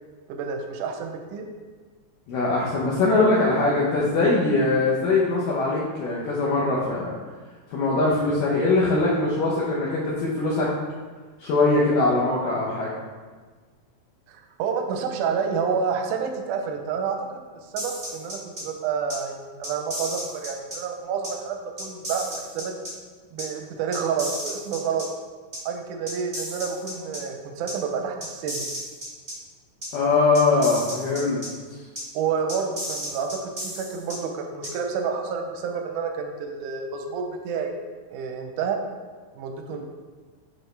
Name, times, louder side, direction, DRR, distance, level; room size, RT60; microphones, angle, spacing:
voice 1, 0.3-1.5 14.3-17.4 17.7-22.8 23.3-25.1 25.7-28.6 32.1-37.7 38.1-38.8 39.3-39.8, right 6 dB, 80° right, 4 dB, 1.9 m, -29 dB
voice 2, 2.3-7.2 7.7-10.7 11.4-12.9 29.9-31.4 39.7-39.8, left 3 dB, 75° left, -6 dB, 2.3 m, -22 dB
sound 1, 17.7-18.6 19.1-19.2 19.6-20.8 21.2-21.3 21.8-22.9 23.4-23.5 23.9-25.0 25.5-25.6 26.1-27.2 27.7-27.8 28.2-29.3 29.8-29.9 30.3-31.5 31.9-32.0 32.5-34.1 34.6-34.7, equal, 60° right, 0.3 m, -33 dB
7.6 x 4.9 x 3.2 m, 1.4 s
omnidirectional pair, 4.1 m